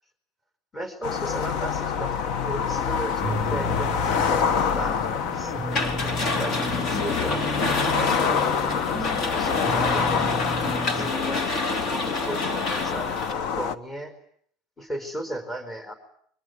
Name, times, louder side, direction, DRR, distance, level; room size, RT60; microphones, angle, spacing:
voice 1, 0.7-7.5 7.9-10.1 10.9-14.2 14.8-15.9, right 1 dB, 15° left, 10 dB, 4.5 m, -36 dB
sound 1, 1.0-13.8, left 7 dB, 65° left, 1.4 m, -27 dB
sound 2, 3.2-11.2, right 2 dB, ahead, 3.4 m, -34 dB
sound 3, 5.7-13.3, left 3 dB, 45° left, 3.4 m, -28 dB
24.0 x 23.5 x 9.5 m, 0.65 s
supercardioid pair, 130°, 0 cm